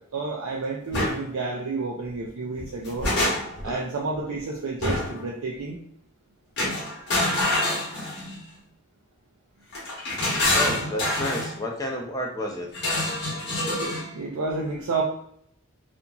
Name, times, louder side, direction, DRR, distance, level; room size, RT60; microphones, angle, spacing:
voice 1, 0.0-3.1 3.6-5.8 14.1-15.0, right 3 dB, 70° right, -2 dB, 0.4 m, -30 dB
sound 1, 0.9-1.2 2.6-3.7 4.8-5.2 6.6-8.4 9.7-11.5 12.7-14.1, left 1 dB, 50° left, 0.9 m, -26 dB
voice 2, 10.5-12.7, left 1 dB, 15° left, 1 dB, 0.4 m, -30 dB
2.8 x 2.5 x 2.3 m, 0.67 s
head